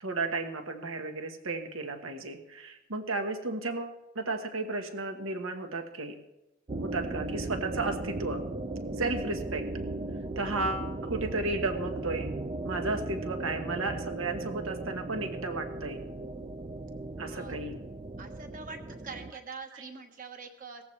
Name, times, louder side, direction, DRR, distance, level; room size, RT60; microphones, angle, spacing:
voice 1, 0.0-6.2 6.8-8.4 9.0-9.7 10.4-12.3 12.6-16.0 17.2-17.8 19.7-19.8, right 3 dB, 75° right, 6 dB, 1.3 m, -33 dB
sound 1, 6.7-19.3, right 2 dB, 25° right, 0.4 m, -37 dB
voice 2, 18.2-18.8 19.0-20.8, right 4 dB, 40° right, 5 dB, 1.3 m, -44 dB
18.5 x 14.5 x 3.3 m, 0.94 s
head